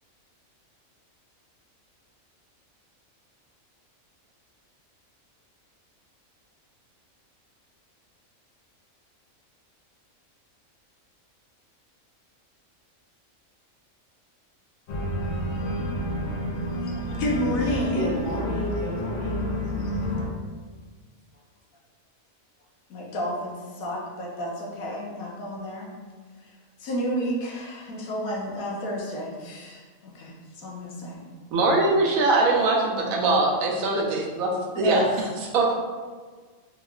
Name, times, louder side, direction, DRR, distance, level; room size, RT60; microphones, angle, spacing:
Organ, 14.9-20.3, left 1 dB, 60° left, 0.8 m, -29 dB
voice 1, 16.6-18.1 22.9-25.9 26.8-31.2 34.7-35.2, equal, 80° left, -2 dB, 1.1 m, -30 dB
voice 2, 17.6-19.7, equal, 45° left, -7 dB, 1.0 m, -32 dB
voice 3, 31.5-35.0 35.5-35.7, right 2 dB, 85° right, -1 dB, 1.1 m, -22 dB
3.5 x 2.9 x 2.4 m, 1.5 s
omnidirectional pair, 1.4 m